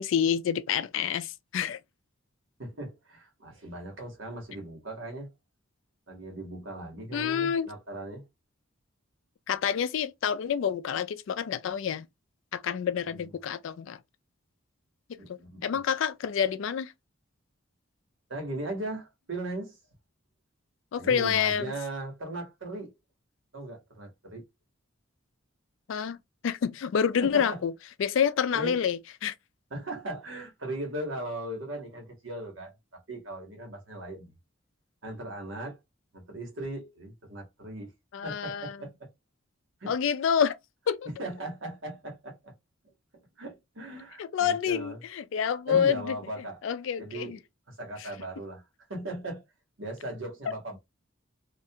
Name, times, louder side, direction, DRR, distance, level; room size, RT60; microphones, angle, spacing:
voice 1, 0.0-1.8 7.1-7.7 9.5-12.1 12.5-14.0 15.3-16.9 20.9-21.7 25.9-26.2 26.4-27.7 28.0-29.3 38.1-38.8 39.9-40.6 40.9-41.1 44.2-46.2 46.6-47.4 48.0-48.1, left 7 dB, 65° left, 0.3 m, -28 dB
voice 2, 2.6-5.3 6.1-8.3 13.1-13.3 15.2-15.8 18.3-19.8 21.0-23.0 23.5-24.5 27.2-27.6 28.5-28.8 29.7-34.3 35.0-35.8 36.1-37.9 38.2-39.1 39.8-39.9 41.2-42.5 43.4-45.0 45.7-46.6 47.0-47.4 47.7-48.6 48.9-49.4 49.8-50.8, right 1 dB, 65° right, 1.1 m, -38 dB
2.4 x 2.2 x 2.7 m
head